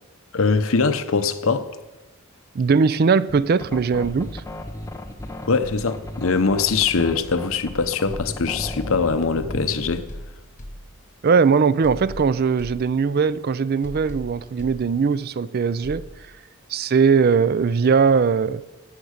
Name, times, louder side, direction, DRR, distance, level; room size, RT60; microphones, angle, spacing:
voice 1, 0.3-1.7 5.5-10.1, left 4 dB, 75° left, 0.8 m, -22 dB
voice 2, 2.5-4.4 11.2-16.1 16.7-18.6, right 5 dB, 45° right, 0.4 m, -20 dB
sound 1, 3.3-9.9, left 1 dB, 15° left, 0.9 m, -35 dB
sound 2, 9.8-11.4 11.8-13.4 13.8-15.4 15.8-16.1, equal, 35° left, 1.1 m, -40 dB
15.0 x 7.5 x 6.5 m
head